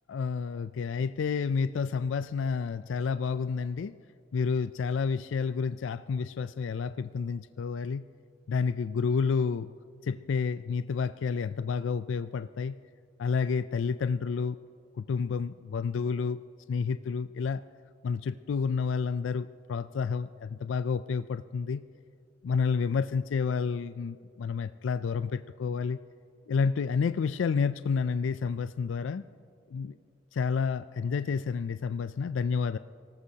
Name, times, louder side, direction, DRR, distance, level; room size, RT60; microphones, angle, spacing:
voice 1, 0.1-3.9 4.3-8.0 8.5-9.7 10.0-12.8 13.2-14.6 15.0-16.4 16.7-17.6 18.0-21.8 22.4-26.0 26.5-29.2 29.7-29.9 30.3-32.8, left 5 dB, 90° left, 13 dB, 0.4 m, -30 dB
25.5 x 18.0 x 2.8 m, 2.4 s
head